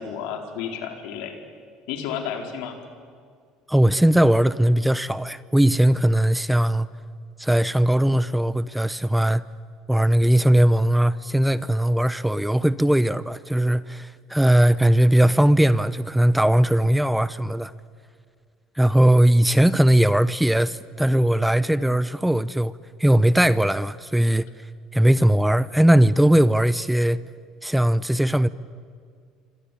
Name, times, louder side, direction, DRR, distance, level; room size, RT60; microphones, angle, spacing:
voice 1, 0.0-1.4 1.9-2.8 19.5-19.6, left 8 dB, 75° left, 4.5 m, -32 dB
voice 2, 3.7-6.9 7.4-9.4 9.9-17.7 18.8-22.7 23.0-24.5 24.9-27.2 27.6-28.5, right 1 dB, 5° right, 0.9 m, -19 dB
28.0 x 25.0 x 8.6 m
hypercardioid pair, 75°, 0 cm